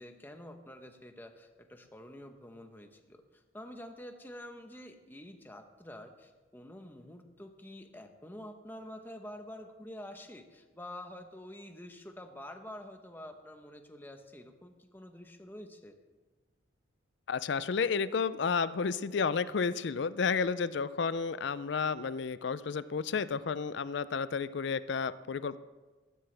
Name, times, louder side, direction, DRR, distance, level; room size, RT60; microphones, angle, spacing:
voice 1, 0.0-16.0, left 1 dB, 10° left, 5 dB, 0.9 m, -48 dB
voice 2, 17.3-25.6, left 5 dB, 60° left, 15 dB, 0.4 m, -31 dB
15.0 x 13.5 x 3.4 m, 1.3 s
head